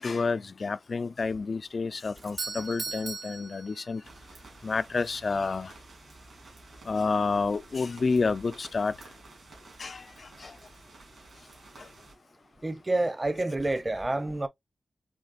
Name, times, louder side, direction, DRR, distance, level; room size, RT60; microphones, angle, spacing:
voice 1, 0.0-4.0 4.6-5.7 6.9-8.9 9.8-10.1 10.4-10.6 11.8-11.9, left 4 dB, 50° left, 0.3 m, -29 dB
Doorbell, 2.2-4.3, right 4 dB, 40° right, 0.3 m, -38 dB
sound 1, 4.0-12.1, right 3 dB, 70° right, 3.2 m, -52 dB
voice 2, 12.6-14.5, right 2 dB, 25° right, 0.7 m, -28 dB
5.2 x 3.1 x 2.5 m
wide cardioid pair, 100°, 0 cm